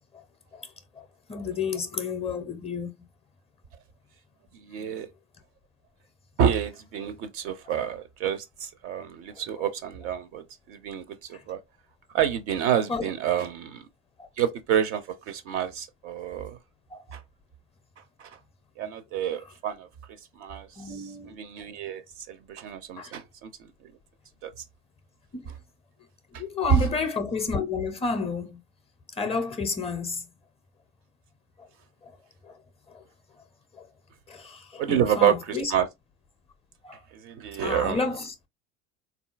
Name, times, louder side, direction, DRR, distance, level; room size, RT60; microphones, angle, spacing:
voice 1, 1.3-2.9 12.9-13.0 14.2-14.3 16.9-17.0 20.8-21.4 23.0-23.1 25.3-25.5 26.3-28.6 29.2-30.2 32.4-32.5 34.3-35.7 36.8-37.0 37.6-38.3, left 4 dB, 15° left, 0.5 m, -30 dB
voice 2, 4.5-5.1 6.4-11.6 12.1-13.9 14.4-16.6 17.1-17.2 18.2-18.4 18.8-23.9 24.4-24.6 26.3-26.4 26.7-26.9 34.8-35.9 37.1-38.1, right 9 dB, 35° right, 0.5 m, -28 dB
3.8 x 2.4 x 2.4 m
figure-of-eight pair, 75°, 38 cm